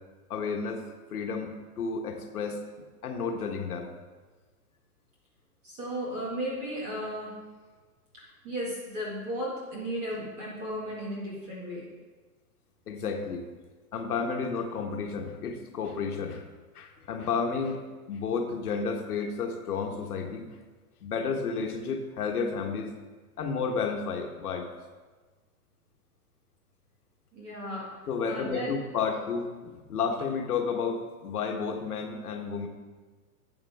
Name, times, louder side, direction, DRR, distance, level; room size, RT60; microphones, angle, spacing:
voice 1, 0.3-2.6 3.0-3.9 12.9-13.5 13.9-16.4 16.7-17.8 18.1-20.5 21.0-23.0 23.4-24.7 28.1-32.7, left 5 dB, 75° left, 3 dB, 1.5 m, -31 dB
voice 2, 5.6-7.4 8.1-11.9 27.3-28.7, equal, 15° right, -5 dB, 1.9 m, -35 dB
12.5 x 8.2 x 3.5 m, 1.3 s
hypercardioid pair, 175°, 46 cm